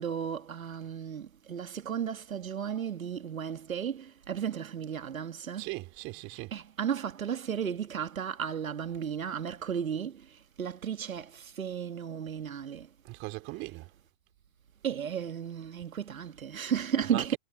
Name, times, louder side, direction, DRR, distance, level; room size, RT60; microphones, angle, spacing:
voice 1, 0.0-5.7 6.5-12.9 14.8-17.4, right 8 dB, 70° right, 2.2 m, -34 dB
voice 2, 5.6-6.5 13.0-13.9 17.1-17.4, right 23 dB, 30° right, 3.8 m, -39 dB
figure-of-eight pair, 125°, 42 cm